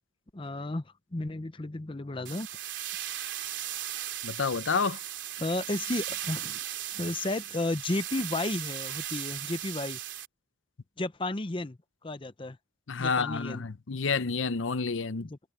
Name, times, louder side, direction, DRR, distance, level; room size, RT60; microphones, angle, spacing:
voice 1, 0.3-0.8 1.1-2.5 5.4-6.6 6.9-10.0 11.0-11.8 12.0-12.6 13.0-13.6 15.3-15.4, left 2 dB, 25° left, 0.7 m, -33 dB
sound 1, 2.2-10.3, right 12 dB, 65° right, 3.7 m, -37 dB
voice 2, 4.2-5.0 12.9-15.3, left 5 dB, 80° left, 0.7 m, -29 dB
head